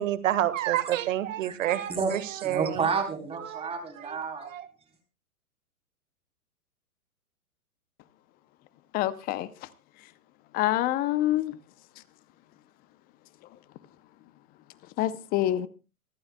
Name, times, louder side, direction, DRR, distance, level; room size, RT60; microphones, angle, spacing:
voice 1, 0.0-2.9 3.4-3.7 4.0-4.2 4.5-4.7, right 12 dB, 60° right, 1.6 m, -28 dB
voice 2, 1.9-4.5, right 5 dB, 15° right, 3.8 m, -30 dB
voice 3, 8.9-9.7 10.5-11.6 15.0-15.7, left 14 dB, 20° left, 0.6 m, -26 dB
25.0 x 12.0 x 2.2 m
hypercardioid pair, 120°, 44 cm